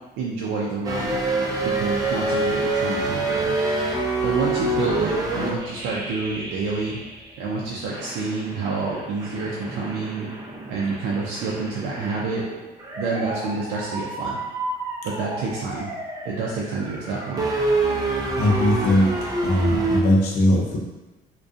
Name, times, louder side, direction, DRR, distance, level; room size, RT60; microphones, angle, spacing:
voice 1, 0.2-1.2 1.6-3.5 4.2-7.0 7.4-10.3 10.7-12.4 13.0-14.4 15.0-15.9 16.2-17.5, right 4 dB, 90° right, -4 dB, 0.4 m, -28 dB
sound 1, 0.8-7.4 7.9-20.0, right 2 dB, 20° right, 0.4 m, -27 dB
voice 2, 18.0-19.1 19.4-20.8, left 1 dB, 70° left, -2 dB, 0.6 m, -20 dB
2.4 x 2.2 x 2.5 m, 1.1 s
cardioid pair, 110°, 17 cm